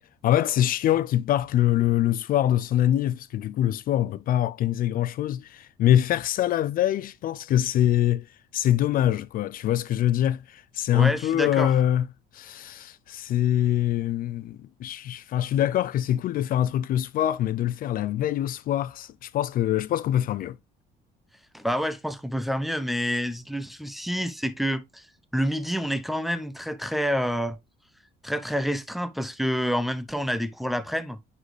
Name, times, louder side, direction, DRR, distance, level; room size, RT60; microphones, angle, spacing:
voice 1, 0.2-8.3 8.5-12.1 12.3-20.6, left 12 dB, 55° left, 0.4 m, -24 dB
voice 2, 10.9-11.7 21.5-25.1 25.3-27.6 28.2-31.2, equal, ahead, 0.7 m, -28 dB
9.7 x 4.1 x 3.2 m
cardioid pair, 110°, 17 cm